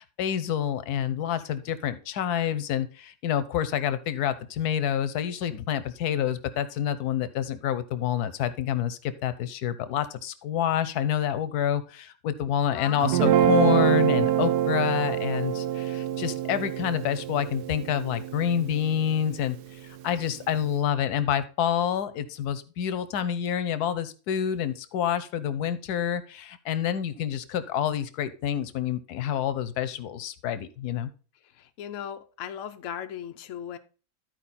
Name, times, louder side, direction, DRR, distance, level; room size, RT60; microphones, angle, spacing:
voice 1, 0.0-31.1, left 9 dB, 90° left, 1.2 m, -28 dB
voice 2, 12.7-13.4 31.6-33.8, left 9 dB, 60° left, 1.0 m, -37 dB
Guitar, 13.0-19.4, right 10 dB, 85° right, 1.2 m, -25 dB
12.0 x 4.6 x 4.1 m
omnidirectional pair, 1.6 m